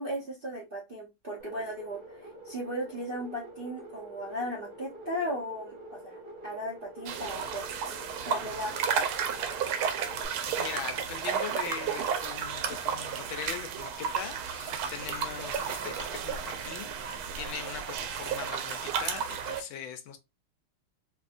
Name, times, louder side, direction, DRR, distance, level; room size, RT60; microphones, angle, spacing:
voice 1, 0.0-2.0 2.4-7.7 8.2-8.9 12.0-12.1, equal, 45° right, 0.7 m, -36 dB
sound 1, 1.4-10.3, right 1 dB, 70° right, 2.2 m, -46 dB
sound 2, 7.1-19.6, right 7 dB, 85° right, 1.5 m, -33 dB
voice 2, 10.5-20.2, left 8 dB, 75° left, 1.3 m, -41 dB
4.2 x 2.7 x 2.5 m
omnidirectional pair, 2.3 m